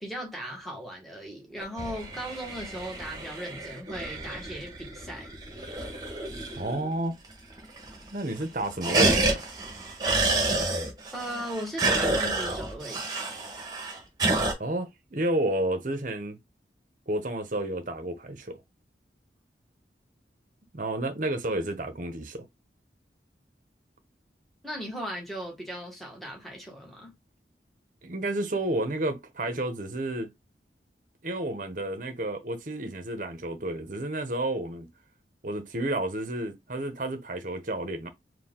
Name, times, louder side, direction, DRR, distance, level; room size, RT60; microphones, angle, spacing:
voice 1, 0.0-5.3 11.1-13.1 24.6-27.1, equal, ahead, 1.4 m, -37 dB
sound 1, 1.6-6.9 7.2-7.3 7.6-8.1 8.4-14.5, right 2 dB, 25° right, 1.2 m, -29 dB
voice 2, 6.6-7.1 8.1-9.4 14.6-16.4 17.1-18.6 20.7-22.5 28.0-30.3 31.2-34.9 35.4-38.1, right 1 dB, 45° right, 0.9 m, -31 dB
4.5 x 2.4 x 3.7 m
head